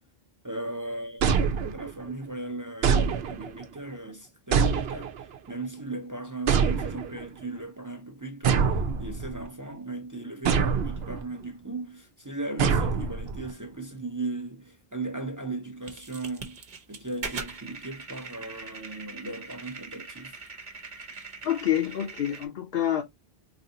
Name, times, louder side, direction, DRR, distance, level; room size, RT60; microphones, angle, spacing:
voice 1, 0.4-1.3 1.6-16.6 16.9-20.4, right 2 dB, 20° right, 0.6 m, -37 dB
sound 1, 1.2-2.1 2.8-3.7 4.5-5.4 6.5-7.3 8.4-9.5 10.5-11.2 12.6-13.5, right 6 dB, 75° right, 0.9 m, -25 dB
sound 2, 15.8-22.5, right 4 dB, 50° right, 0.9 m, -41 dB
voice 2, 21.4-23.0, left 11 dB, 65° left, 0.8 m, -27 dB
4.2 x 2.7 x 2.7 m
omnidirectional pair, 1.0 m